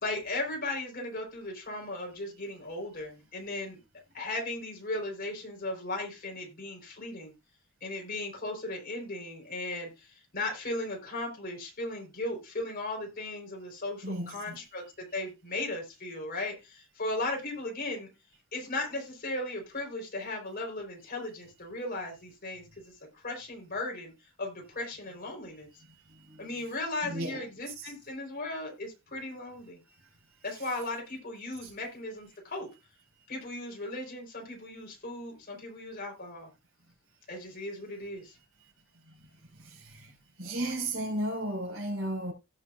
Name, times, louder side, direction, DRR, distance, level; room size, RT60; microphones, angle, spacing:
voice 1, 0.0-3.8 4.1-7.3 7.8-18.1 18.5-22.6 23.1-24.1 24.4-25.7 26.4-29.8 30.4-32.7 33.3-36.5 37.3-38.4, left 2 dB, 45° left, 4.0 m, -37 dB
voice 2, 14.0-14.6 26.3-26.7 27.0-27.9 30.5-30.9 31.6-31.7 39.6-40.1 40.4-42.3, right 1 dB, 75° right, 5.1 m, -35 dB
16.5 x 6.1 x 2.5 m
head